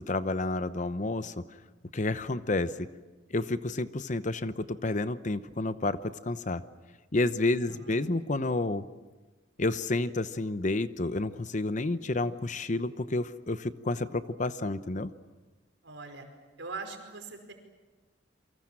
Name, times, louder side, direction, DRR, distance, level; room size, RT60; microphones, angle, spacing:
voice 1, 0.0-1.4 1.9-2.9 3.3-6.6 7.1-8.8 9.6-15.1, left 2 dB, 40° left, 13 dB, 0.9 m, -30 dB
voice 2, 7.6-8.2 15.8-16.2 16.6-17.5, right 3 dB, 75° right, 5 dB, 5.1 m, -42 dB
28.5 x 24.0 x 7.5 m, 1.2 s
head